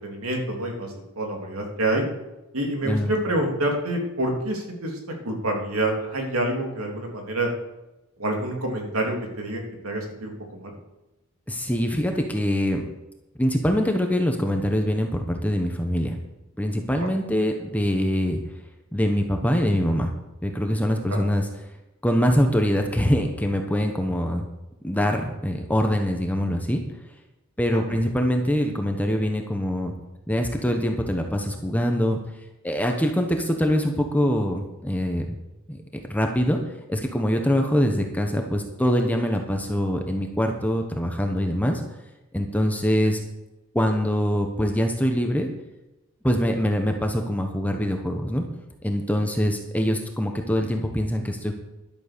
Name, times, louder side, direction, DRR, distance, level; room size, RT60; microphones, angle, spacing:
voice 1, 0.0-2.0 2.5-5.0 5.2-7.5 8.2-10.7 17.0-17.1 21.1-21.2 27.7-28.0, right 1 dB, 85° right, 1 dB, 3.1 m, -27 dB
voice 2, 11.5-12.8 13.4-16.2 16.6-18.4 18.9-20.1 20.4-21.5 22.0-24.4 24.8-26.8 27.6-29.9 30.3-32.2 32.6-35.4 35.7-35.8 36.1-36.6 36.9-41.8 42.3-43.2 43.7-45.5 46.2-48.4 48.8-51.5, equal, 5° left, 3 dB, 1.1 m, -24 dB
11.5 x 8.9 x 6.8 m, 1.0 s
head